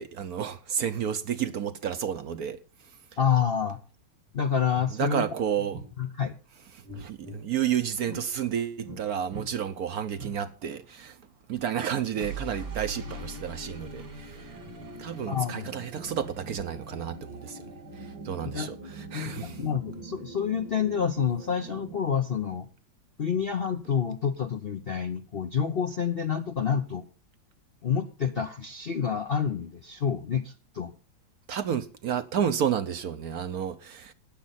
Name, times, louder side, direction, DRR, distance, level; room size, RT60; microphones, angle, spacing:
voice 1, 0.0-2.6 5.0-5.8 6.7-11.2 11.5-14.6 15.0-19.6 31.5-34.1, right 8 dB, 60° right, 1.1 m, -31 dB
voice 2, 3.2-3.8 4.3-5.2 6.0-6.3 15.3-15.7 18.5-18.7 19.1-22.7 23.2-27.0 27.8-30.9, left 7 dB, 50° left, 0.7 m, -28 dB
sound 1, 4.3-4.4 4.7-4.9 5.7-5.9 6.8-7.4 8.1-8.3 8.8-9.0 9.3-9.5 10.2-10.3 12.1-22.0, right 2 dB, 85° right, 4.3 m, -42 dB
16.0 x 10.0 x 4.1 m
omnidirectional pair, 2.1 m